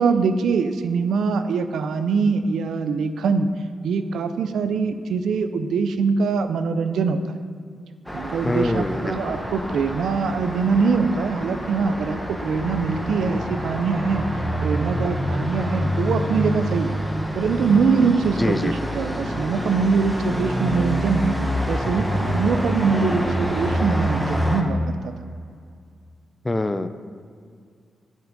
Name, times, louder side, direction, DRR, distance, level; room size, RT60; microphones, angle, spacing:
voice 1, 0.0-3.5 3.8-7.3 8.1-14.3 14.6-17.0 17.3-21.4 21.7-25.1, right 5 dB, 85° right, 9 dB, 0.5 m, -23 dB
Traffic noise roadway noise, 8.1-24.6, equal, ahead, 1.0 m, -27 dB
voice 2, 8.4-9.3 18.4-18.7 26.5-26.9, left 2 dB, 15° left, 11 dB, 0.4 m, -24 dB
8.9 x 6.1 x 5.3 m, 2.2 s
cardioid pair, 105°, 0 cm